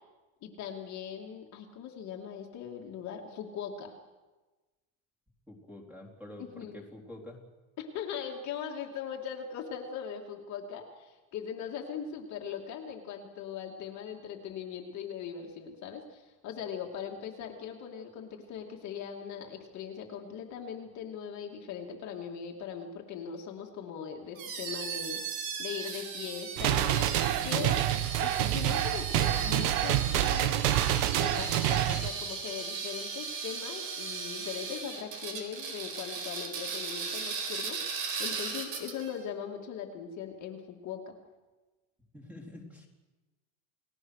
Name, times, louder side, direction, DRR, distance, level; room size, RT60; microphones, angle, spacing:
voice 1, 0.4-4.0 6.4-6.8 7.8-27.1 27.4-30.5 31.2-41.1, left 7 dB, 40° left, 1 dB, 2.5 m, -40 dB
voice 2, 5.5-7.4 42.1-42.9, left 1 dB, 5° right, 0 dB, 3.9 m, -47 dB
sound 1, 24.3-39.2, right 5 dB, 50° right, 4.6 m, -37 dB
sound 2, 26.6-32.1, right 13 dB, 80° right, 1.5 m, -27 dB
30.0 x 19.0 x 6.5 m, 1.2 s
cardioid pair, 160°, 44 cm